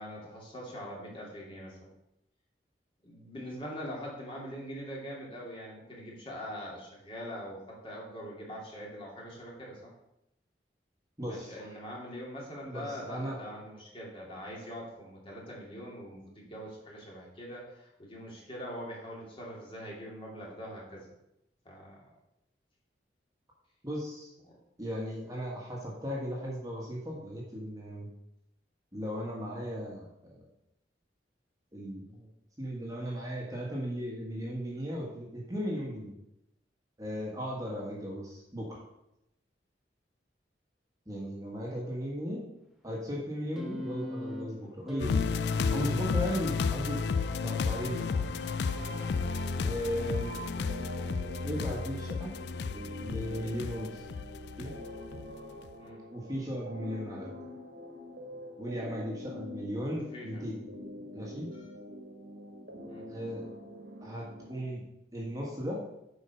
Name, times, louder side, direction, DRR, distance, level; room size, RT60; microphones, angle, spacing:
voice 1, 0.0-1.9 3.0-9.9 11.3-21.1 21.6-22.0 46.3-46.4 55.8-56.0 60.1-60.5 61.5-61.7 62.9-63.1, equal, 30° left, -3 dB, 2.4 m, -43 dB
voice 2, 11.2-11.5 12.6-13.4 23.8-24.3 24.8-28.1 28.9-30.4 31.7-32.3 32.6-36.1 37.0-38.8 41.1-42.5 42.8-45.2 45.7-47.0 47.4-48.4 49.6-50.4 51.4-52.3 53.0-54.1 54.6-54.7 56.1-57.3 58.6-60.6 61.1-61.5 63.1-63.4 64.0-64.8 65.1-65.8, equal, 20° right, -3 dB, 1.6 m, -36 dB
sound 1, 43.6-49.7 50.8-50.9, equal, ahead, 1.0 m, -43 dB
sound 2, 45.0-55.3 55.7-55.8, left 5 dB, 65° left, 0.4 m, -32 dB
sound 3, 48.6-64.6, equal, 75° right, 1.8 m, -45 dB
8.2 x 4.7 x 5.7 m, 0.84 s
head